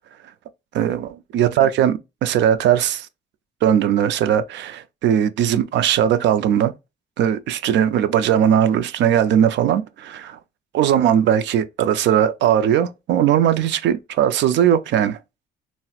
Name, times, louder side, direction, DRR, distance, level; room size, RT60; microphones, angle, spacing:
voice 1, 0.7-3.1 3.6-6.7 7.2-10.4 10.7-15.2, right 10 dB, 65° right, 0.4 m, -19 dB
4.1 x 2.1 x 2.3 m
cardioid pair, 130°, 20 cm